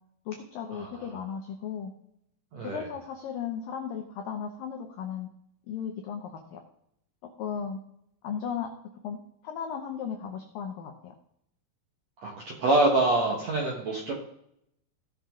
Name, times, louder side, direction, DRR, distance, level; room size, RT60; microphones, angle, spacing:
voice 1, 0.3-1.9 2.6-5.3 5.7-6.6 7.4-7.8 8.2-8.7 9.0-9.2 9.4-11.1, left 7 dB, 80° left, 4 dB, 2.0 m, -35 dB
voice 2, 2.5-2.9 12.2-12.3 12.6-14.1, right 2 dB, 65° right, -1 dB, 1.7 m, -25 dB
17.0 x 6.2 x 3.7 m, 0.75 s
omnidirectional pair, 5.3 m